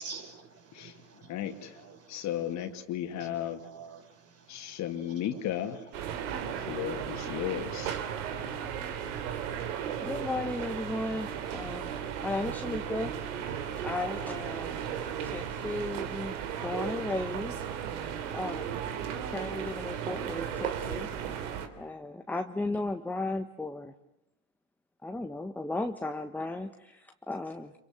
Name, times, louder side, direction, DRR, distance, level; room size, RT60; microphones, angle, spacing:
voice 1, 0.0-2.8 3.2-5.8, right 5 dB, 40° right, 5.9 m, -49 dB
voice 2, 1.3-3.6 4.5-5.9 6.4-8.0, left 11 dB, 45° left, 2.8 m, -35 dB
sound 1, 5.9-21.7, right 8 dB, 70° right, 3.4 m, -35 dB
voice 3, 10.0-11.9 12.2-13.1 13.8-14.8 15.2-16.3 16.6-17.6 18.3-18.8 19.3-23.9 25.0-27.7, left 2 dB, 5° left, 1.3 m, -35 dB
27.0 x 24.5 x 7.8 m
supercardioid pair, 115°, 38 cm